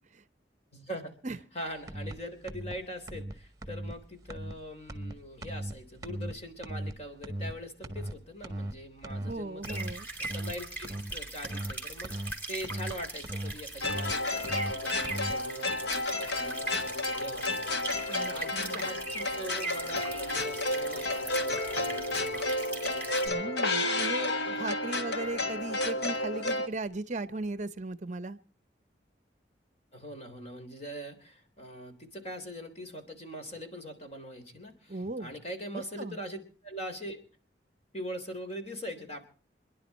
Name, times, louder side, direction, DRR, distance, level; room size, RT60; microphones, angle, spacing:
voice 1, 0.7-1.1 1.5-9.8 10.2-17.7 18.3-22.4 29.9-36.4 36.6-37.2 37.9-39.3, equal, 35° left, 3.5 m, -42 dB
sound 1, 1.9-2.1 2.5-2.7 3.1-3.3 3.6-3.9 4.3-4.5 4.9-5.1 5.4-5.7 6.0-6.3 6.6-6.9 7.2-7.5 7.8-8.1 8.4-8.7 9.0-9.3 9.6-9.9 10.2-10.5 10.8-11.1 11.4-11.7 12.0-12.3 12.6-12.9 13.2-13.5 13.8-14.1 14.4-14.7 15.0-15.3, right 1 dB, 20° right, 1.5 m, -37 dB
voice 2, 9.2-10.1 18.1-18.8 23.2-28.4 34.9-35.3 36.0-36.2, right 2 dB, 45° right, 0.7 m, -37 dB
sound 2, 9.6-23.3, right 2 dB, 10° left, 3.8 m, -40 dB
sound 3, 13.8-26.7, left 2 dB, 70° left, 1.7 m, -31 dB
27.0 x 11.0 x 4.2 m
head